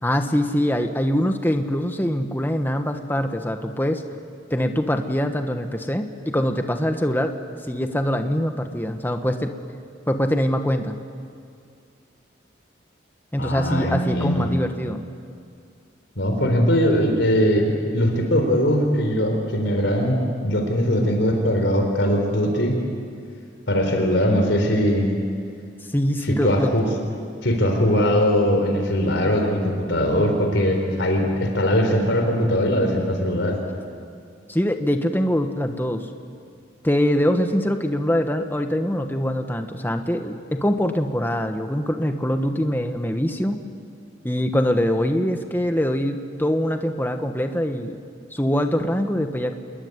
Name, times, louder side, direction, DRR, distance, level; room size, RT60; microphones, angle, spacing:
voice 1, 0.0-4.0 4.5-7.3 7.7-9.5 10.1-11.0 13.3-15.0 25.9-26.7 34.5-36.1 36.8-43.6 44.2-48.0 48.3-49.5, equal, 10° left, 6 dB, 1.2 m, -23 dB
voice 2, 13.4-14.5 16.2-22.8 23.7-25.1 26.2-26.9 27.4-33.6, equal, 70° left, 3 dB, 3.9 m, -21 dB
28.0 x 21.5 x 9.6 m, 2.3 s
head